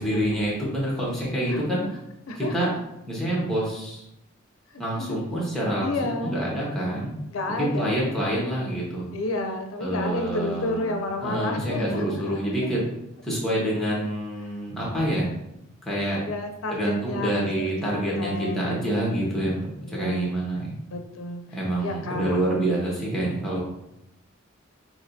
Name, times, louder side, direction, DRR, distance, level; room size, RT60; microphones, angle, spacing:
voice 1, 0.0-1.8 2.3-2.7 3.1-4.0 4.8-5.9 6.2-7.1 7.6-9.1 9.8-12.8 13.2-15.3 15.8-16.2 16.7-19.6 19.9-20.7 21.5-23.6, right 1 dB, ahead, -5 dB, 1.2 m, -27 dB
voice 2, 1.5-1.9 2.3-2.7 4.7-5.2 5.8-6.4 7.3-8.1 9.1-12.4 16.2-19.5 19.8-20.3 20.9-21.4 21.8-22.4, left 2 dB, 90° left, 5 dB, 0.5 m, -31 dB
6.3 x 3.0 x 2.6 m, 0.85 s
head